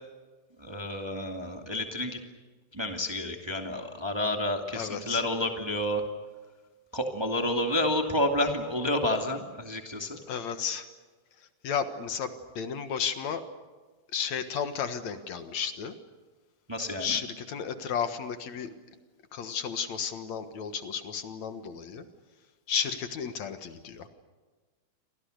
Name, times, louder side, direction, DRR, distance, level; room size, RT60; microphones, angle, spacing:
voice 1, 0.6-2.2 2.7-6.0 6.9-10.2 16.7-17.1, left 1 dB, 10° right, 3 dB, 2.0 m, -30 dB
voice 2, 4.7-5.2 10.3-10.9 11.4-13.4 14.1-16.0 17.0-18.7 19.3-22.0 22.7-24.1, left 7 dB, 65° left, 9 dB, 2.6 m, -33 dB
29.5 x 25.5 x 6.6 m, 1.4 s
omnidirectional pair, 3.5 m